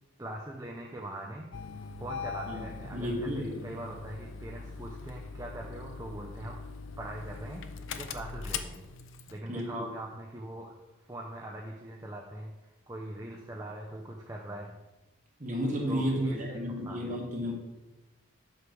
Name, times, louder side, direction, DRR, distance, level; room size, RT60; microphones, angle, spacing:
voice 1, 0.2-1.5 2.0-6.6 7.0-7.6 8.0-8.9 9.3-10.8 11.1-14.8 15.9-17.2, right 1 dB, 15° right, -1 dB, 0.5 m, -42 dB
Engine starting, 1.5-9.4, left 5 dB, 65° left, 0.5 m, -41 dB
voice 2, 2.5-3.5 9.5-9.8 15.4-17.5, equal, 35° right, 0 dB, 1.5 m, -32 dB
8.1 x 3.3 x 6.0 m, 1.0 s
head